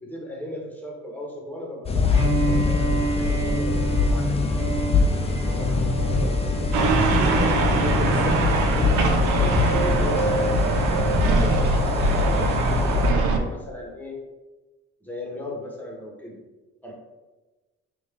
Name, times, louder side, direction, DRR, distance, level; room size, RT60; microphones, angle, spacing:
voice 1, 0.0-4.6 7.2-8.4 8.7-11.7 12.0-14.1 15.0-16.4 16.8-16.9, left 1 dB, 5° left, -2 dB, 1.0 m, -36 dB
sound 1, 1.8-13.1, left 3 dB, 20° left, 0.4 m, -24 dB
Bowed string instrument, 2.1-8.1, right 2 dB, 15° right, 1.2 m, -29 dB
voice 2, 5.5-6.3 6.8-7.2 7.5-8.3, left 2 dB, 80° left, -1 dB, 1.2 m, -30 dB
sound 2, 6.7-13.4, right 3 dB, 75° right, 0.5 m, -22 dB
3.6 x 2.5 x 3.3 m, 1.1 s
cardioid pair, 90°, 30 cm